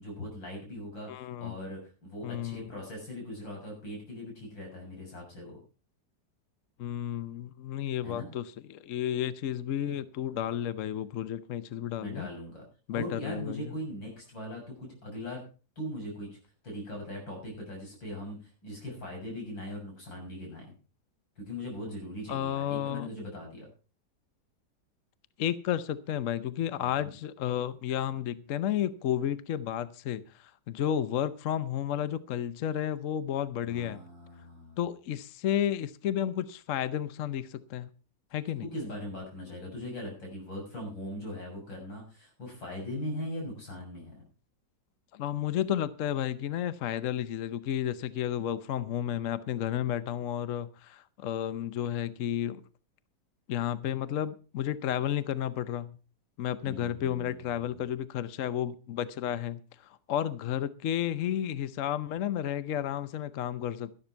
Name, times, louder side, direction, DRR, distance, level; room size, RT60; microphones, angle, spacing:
voice 1, 0.0-5.6 8.0-8.3 12.0-12.6 12.9-15.4 15.8-16.3 16.6-20.7 21.4-23.7 26.8-27.1 33.6-34.8 38.7-44.1 56.6-57.8, left 1 dB, 85° left, 1 dB, 7.5 m, -40 dB
voice 2, 1.1-1.6 2.2-2.7 6.8-12.3 12.9-13.7 22.3-23.1 25.4-34.0 34.8-37.9 38.3-38.7 45.1-52.6 53.5-56.0 56.4-63.9, left 10 dB, 60° left, 14 dB, 0.9 m, -32 dB
12.5 x 12.5 x 4.5 m, 0.35 s
omnidirectional pair, 2.0 m